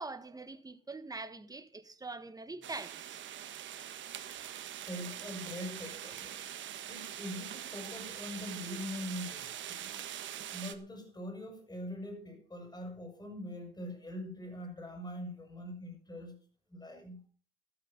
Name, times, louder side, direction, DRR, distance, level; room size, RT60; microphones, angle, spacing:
voice 1, 0.0-3.2, right 3 dB, 20° right, 1.7 m, -43 dB
sound 1, 2.6-10.7, right 10 dB, 70° right, 1.5 m, -43 dB
voice 2, 4.2-4.5 4.9-6.4 6.9-10.0 10.5-16.3 16.7-17.2, left 1 dB, 20° left, 6.1 m, -43 dB
13.0 x 12.5 x 5.5 m
cardioid pair, 90°, 20 cm